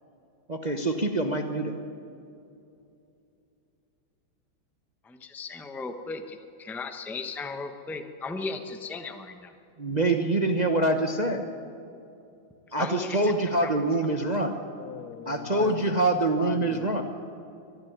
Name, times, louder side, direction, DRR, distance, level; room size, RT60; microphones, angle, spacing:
voice 1, 0.5-1.8 9.8-11.5 12.7-14.6 15.3-17.0, right 2 dB, 30° right, 5 dB, 0.7 m, -25 dB
voice 2, 5.0-9.5 12.8-13.3, left 3 dB, ahead, 6 dB, 0.6 m, -36 dB
voice 3, 14.8-16.0 16.4-17.0, left 8 dB, 70° left, 10 dB, 1.0 m, -39 dB
24.5 x 11.5 x 9.5 m, 2.7 s
omnidirectional pair, 2.3 m